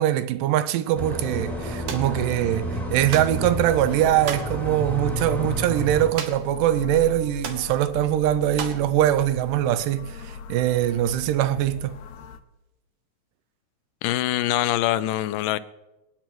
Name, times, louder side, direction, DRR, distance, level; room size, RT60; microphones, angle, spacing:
voice 1, 0.0-11.9, right 12 dB, 85° right, 2.2 m, -22 dB
sound 1, 1.0-6.1, right 1 dB, ahead, 1.7 m, -30 dB
sound 2, 1.9-2.1 3.1-3.4 4.2-4.5 6.2-6.6 6.8-6.9 7.4-7.7 8.6-8.9, right 6 dB, 70° right, 1.4 m, -33 dB
sound 3, 3.3-12.4, left 6 dB, 75° left, 1.9 m, -38 dB
voice 2, 14.0-15.6, left 14 dB, 90° left, 2.3 m, -24 dB
26.0 x 9.2 x 3.1 m
omnidirectional pair, 3.8 m